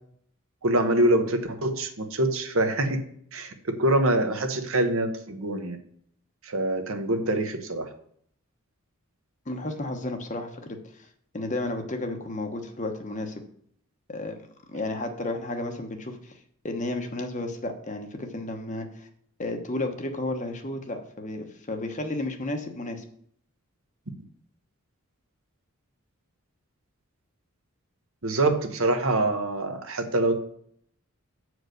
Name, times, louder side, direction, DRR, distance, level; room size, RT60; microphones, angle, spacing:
voice 1, 0.6-3.0 3.3-5.8 6.4-7.9 28.2-30.3, right 1 dB, 65° right, 6 dB, 1.1 m, -25 dB
voice 2, 9.5-11.1 11.3-13.4 14.1-14.4 14.7-16.4 16.6-19.1 19.4-23.0, left 2 dB, 35° left, 5 dB, 1.1 m, -32 dB
8.0 x 4.8 x 6.5 m, 0.64 s
head